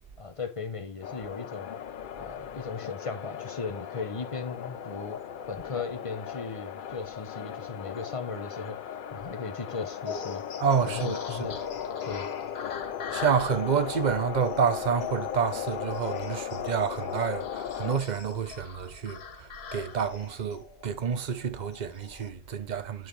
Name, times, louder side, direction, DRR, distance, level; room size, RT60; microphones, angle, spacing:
voice 1, 0.2-1.7 2.2-5.2 5.5-8.8 9.1-10.4 10.8-11.6 12.0-12.3, left 4 dB, 30° left, 1.0 m, -37 dB
sound 1, 1.0-18.0, left 9 dB, 60° left, 0.7 m, -37 dB
sound 2, 10.0-22.3, left 6 dB, 80° left, 1.1 m, -42 dB
voice 2, 10.6-11.5 13.1-23.1, right 7 dB, 45° right, 0.9 m, -29 dB
11.0 x 4.7 x 3.2 m
omnidirectional pair, 1.1 m